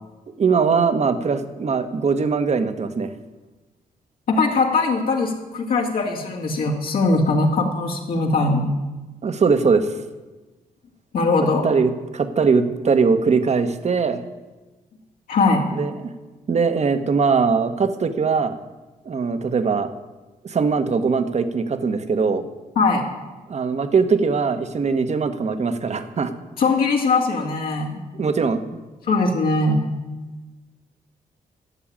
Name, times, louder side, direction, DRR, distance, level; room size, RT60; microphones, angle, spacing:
voice 1, 0.4-3.1 9.2-9.9 11.6-14.2 15.7-15.9 16.5-18.6 19.0-19.9 20.4-22.5 23.5-26.3 28.1-28.8, right 5 dB, 50° right, 9 dB, 1.2 m, -21 dB
voice 2, 4.3-8.7 11.1-11.6 15.3-15.7 22.8-23.0 26.6-28.0 29.1-29.8, left 3 dB, 75° left, -1 dB, 2.3 m, -20 dB
12.5 x 7.1 x 8.8 m, 1.2 s
cardioid pair, 70°, 15 cm